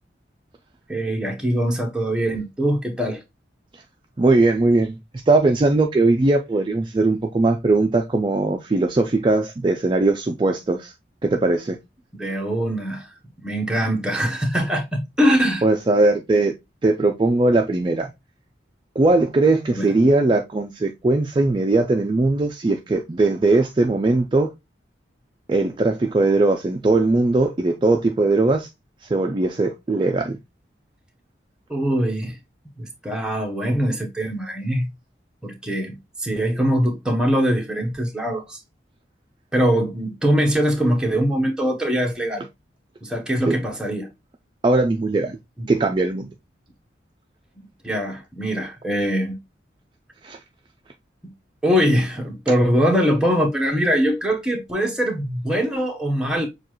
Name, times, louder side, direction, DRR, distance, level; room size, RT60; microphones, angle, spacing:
voice 1, 0.9-3.2 12.2-13.1 13.4-15.6 19.7-19.9 31.7-32.4 32.8-34.9 35.4-38.6 39.5-42.4 43.0-44.1 45.6-45.7 47.8-49.4 51.6-56.5, equal, 5° right, 0.9 m, -22 dB
voice 2, 4.2-10.9 11.2-11.8 15.6-16.5 16.8-18.1 19.0-24.5 25.5-28.7 29.0-30.4 43.5-43.6 44.6-45.4 45.7-46.3 50.2-50.4, right 2 dB, 25° right, 0.3 m, -19 dB
6.7 x 2.4 x 2.9 m
head